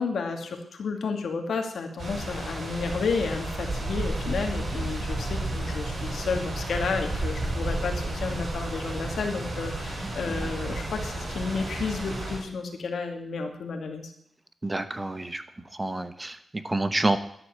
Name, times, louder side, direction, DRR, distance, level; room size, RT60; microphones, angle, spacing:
voice 1, 0.0-14.1, left 4 dB, 80° left, 4 dB, 2.4 m, -31 dB
sound 1, 2.0-12.4, right 2 dB, 60° right, 6.0 m, -32 dB
voice 2, 10.0-10.5 14.6-15.4 15.7-17.2, right 2 dB, 20° right, 10 dB, 1.0 m, -29 dB
11.5 x 9.8 x 7.8 m, 0.71 s
wide cardioid pair, 140°, 0 cm